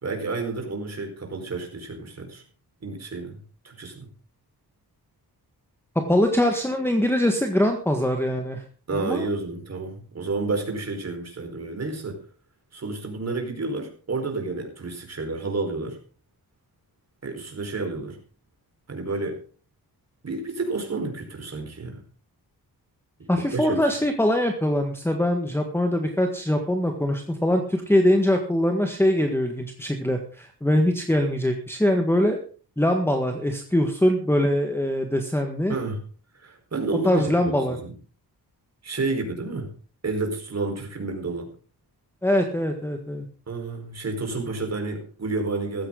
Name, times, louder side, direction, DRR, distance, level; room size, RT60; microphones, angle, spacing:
voice 1, 0.0-2.4 2.8-3.4 3.6-4.1 8.9-12.2 12.7-16.0 17.2-18.2 18.9-19.4 20.2-22.0 23.2-23.9 35.7-36.0 36.3-37.9 38.8-39.7 40.0-41.5 43.5-45.9, right 3 dB, 40° right, 2 dB, 4.7 m, -30 dB
voice 2, 5.9-8.6 8.9-9.3 23.3-32.4 32.8-35.7 37.0-37.8 42.2-43.3, left 1 dB, 5° left, 4 dB, 1.6 m, -23 dB
15.0 x 14.5 x 3.9 m, 0.40 s
wide cardioid pair, 125°, 39 cm